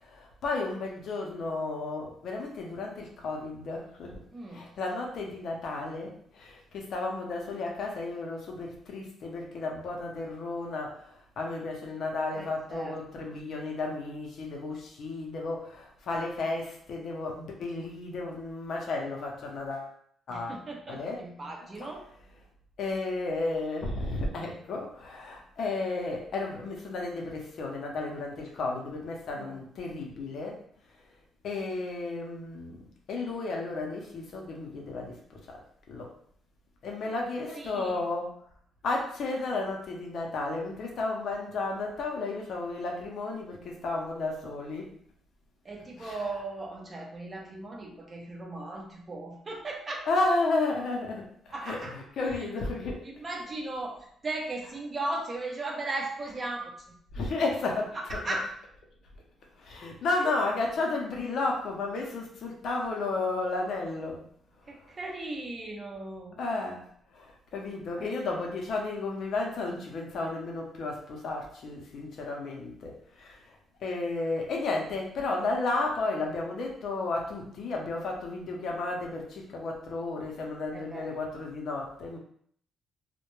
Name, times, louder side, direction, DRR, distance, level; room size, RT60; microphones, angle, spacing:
voice 1, 0.0-4.2 4.5-19.9 20.3-20.6 20.9-21.2 21.8-21.9 22.8-30.6 31.4-32.8 33.1-35.6 35.9-36.1 36.8-38.3 38.8-45.0 46.0-46.2 50.1-53.1 57.1-58.2 59.6-64.2 66.4-66.8 67.1-73.6 73.8-82.2, left 3 dB, 65° left, 0 dB, 0.6 m, -33 dB
voice 2, 4.3-4.7 12.3-13.0 20.3-22.0 29.3-29.6 37.1-38.0 45.6-50.1 51.5-52.0 52.2-52.5 53.0-57.0 57.3-57.4 57.9-58.5 60.2-60.3 64.7-66.4 68.0-68.1 70.2-70.3 80.7-81.1, right 2 dB, 35° right, 1 dB, 0.6 m, -37 dB
2.1 x 2.1 x 3.0 m, 0.63 s
cardioid pair, 90°, 0 cm